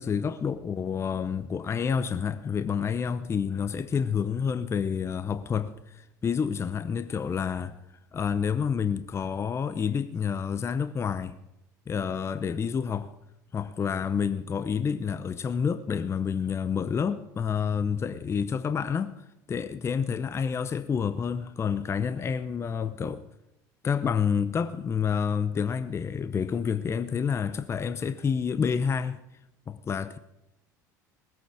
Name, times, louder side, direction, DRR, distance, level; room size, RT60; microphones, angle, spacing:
voice 1, 0.0-7.8 8.1-11.4 11.9-13.1 13.5-19.2 19.5-23.2 23.8-29.2 29.7-30.2, left 6 dB, 30° left, 0.7 m, -29 dB
19.5 x 8.6 x 4.9 m
hypercardioid pair, 75°, 9 cm